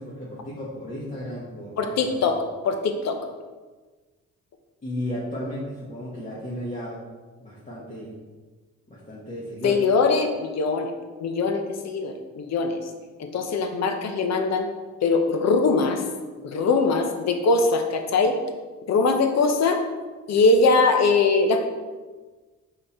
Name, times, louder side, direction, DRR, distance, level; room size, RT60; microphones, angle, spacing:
voice 1, 0.0-2.3 4.8-7.0 7.4-8.1 8.9-9.8, equal, 25° left, -7 dB, 1.4 m, -34 dB
voice 2, 1.8-2.4 2.6-3.2 9.6-10.9 11.2-12.8 13.2-14.7 15.0-16.0 16.4-18.4 18.9-19.8 20.3-21.6, left 3 dB, 60° left, 5 dB, 0.8 m, -21 dB
5.2 x 4.2 x 4.3 m, 1.3 s
cardioid pair, 90°, 30 cm